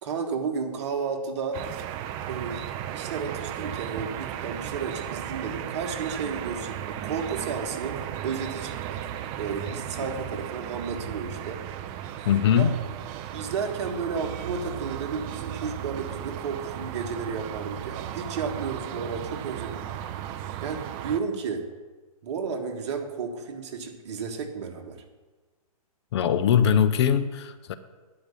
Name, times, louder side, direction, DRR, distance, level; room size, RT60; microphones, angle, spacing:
voice 1, 0.0-1.6 2.2-2.6 2.9-9.0 9.4-11.6 12.5-12.7 13.3-19.9 20.6-21.7 22.2-25.0, right 5 dB, 50° right, 4 dB, 1.5 m, -32 dB
sound 1, 1.5-21.2, right 11 dB, 20° right, 0.3 m, -35 dB
voice 2, 12.3-12.7 26.1-27.7, left 8 dB, 45° left, 11 dB, 0.6 m, -21 dB
10.5 x 4.9 x 6.8 m, 1.3 s
hypercardioid pair, 140°, 19 cm